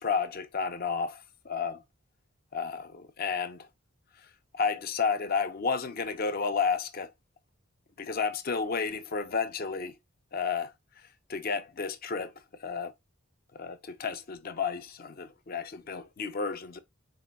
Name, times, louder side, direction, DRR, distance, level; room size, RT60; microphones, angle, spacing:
voice 1, 0.0-1.8 2.5-3.7 4.5-7.1 8.0-10.0 10.3-10.7 11.3-12.3 12.6-12.9 13.6-16.8, left 5 dB, 45° left, 0.5 m, -31 dB
4.1 x 2.3 x 3.9 m
head